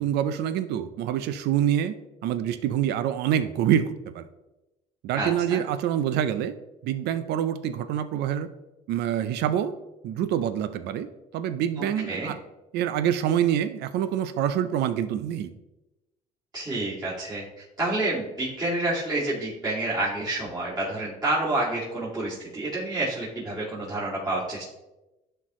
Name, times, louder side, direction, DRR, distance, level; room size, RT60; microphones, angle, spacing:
voice 1, 0.0-2.0 2.2-4.3 5.0-6.5 6.8-8.5 8.9-9.7 10.0-12.4 12.7-15.5, right 10 dB, 80° right, 12 dB, 0.6 m, -26 dB
voice 2, 5.1-5.6 12.1-12.3 16.5-24.7, right 2 dB, 25° right, -10 dB, 2.6 m, -29 dB
11.0 x 4.5 x 3.1 m, 1.0 s
cardioid pair, 110°, 17 cm